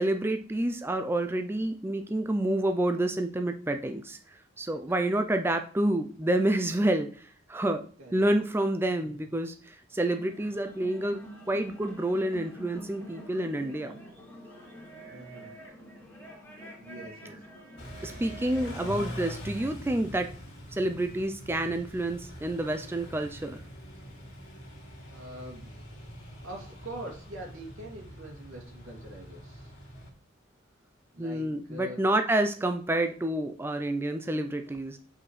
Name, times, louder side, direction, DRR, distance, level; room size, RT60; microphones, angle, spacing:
voice 1, 0.0-4.2 4.6-7.8 8.1-14.0 18.0-20.3 20.7-23.6 31.2-35.0, right 1 dB, 10° right, 6 dB, 0.4 m, -28 dB
sound 1, 9.9-19.8, right 1 dB, 10° left, 2.3 m, -47 dB
voice 2, 15.1-15.6 16.8-17.4 18.5-19.1 25.1-25.8 26.4-29.7 31.1-32.0, right 1 dB, 90° right, -1 dB, 2.5 m, -44 dB
Car / Idling / Accelerating revving vroom, 17.8-30.1, equal, 60° left, 2.4 m, -44 dB
8.4 x 4.9 x 3.2 m, 0.43 s
head